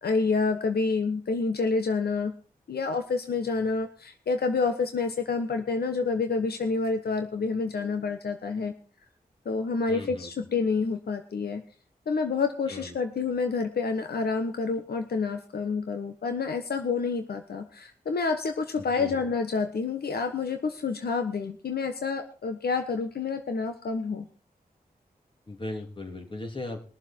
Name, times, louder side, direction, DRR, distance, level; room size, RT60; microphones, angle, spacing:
voice 1, 0.0-2.3 2.7-8.7 9.4-11.6 12.1-24.2, left 4 dB, 85° left, 7 dB, 1.3 m, -28 dB
voice 2, 9.9-10.3 12.7-13.0 18.8-19.2 25.5-26.8, left 2 dB, 30° left, 3 dB, 3.5 m, -37 dB
22.0 x 7.4 x 4.6 m, 0.39 s
wide cardioid pair, 75°, 16 cm